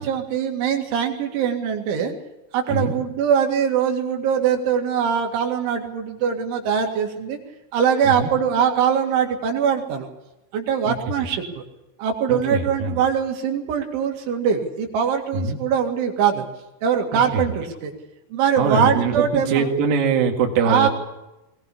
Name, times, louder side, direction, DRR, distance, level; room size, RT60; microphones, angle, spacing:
voice 1, 0.0-2.1 2.5-7.4 7.7-10.1 10.5-11.6 12.0-16.5 16.8-17.9 18.3-19.7 20.6-20.9, right 7 dB, 75° right, 3 dB, 4.5 m, -22 dB
voice 2, 12.3-13.0 15.3-15.6 17.1-17.5 18.6-20.9, right 5 dB, 55° right, 1 dB, 3.6 m, -22 dB
20.5 x 20.0 x 8.5 m, 0.95 s
omnidirectional pair, 5.6 m